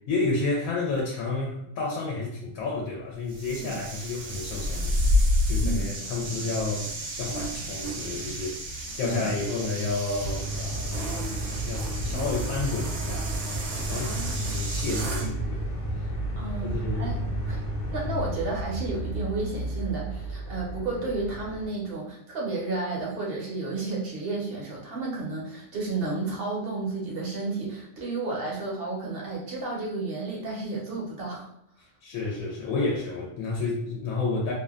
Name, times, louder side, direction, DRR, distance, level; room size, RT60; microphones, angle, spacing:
voice 1, 0.1-6.9 7.2-11.2 11.6-13.3 13.7-15.6 16.6-17.1 17.6-17.7 32.0-34.5, left 3 dB, 80° left, -2 dB, 1.0 m, -31 dB
sound 1, 3.3-15.3, left 1 dB, 85° right, 1.1 m, -30 dB
sound 2, 10.2-21.7, right 1 dB, 55° left, 0.7 m, -32 dB
voice 2, 13.9-14.6 16.4-17.2 17.5-17.6 17.9-31.5, right 3 dB, 55° right, -3 dB, 0.8 m, -32 dB
2.7 x 2.1 x 2.3 m, 0.73 s
omnidirectional pair, 1.4 m